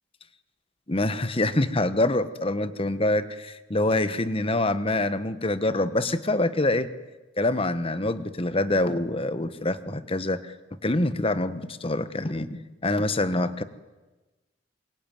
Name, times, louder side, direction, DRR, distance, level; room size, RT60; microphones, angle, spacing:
voice 1, 0.9-6.9 7.4-10.5 10.8-13.6, left 2 dB, 30° left, 13 dB, 1.2 m, -25 dB
26.0 x 22.5 x 9.3 m, 1.2 s
head